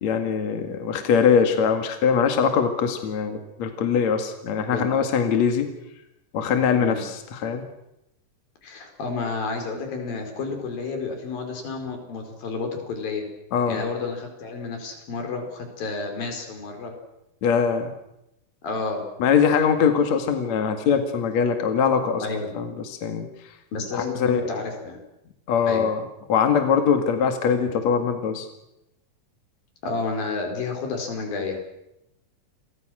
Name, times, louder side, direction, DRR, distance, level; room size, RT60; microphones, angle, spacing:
voice 1, 0.0-5.7 6.3-7.6 13.5-13.8 17.4-17.9 19.2-22.2 22.5-23.3 23.9-24.6 25.5-26.0 26.3-28.5, left 6 dB, 55° left, 6 dB, 3.1 m, -22 dB
voice 2, 8.6-13.2 13.7-16.9 18.6-19.0 22.2-22.5 23.7-25.0 25.6-25.8 29.8-31.6, left 4 dB, 85° left, 4 dB, 6.6 m, -30 dB
29.5 x 23.5 x 6.4 m, 0.85 s
omnidirectional pair, 4.0 m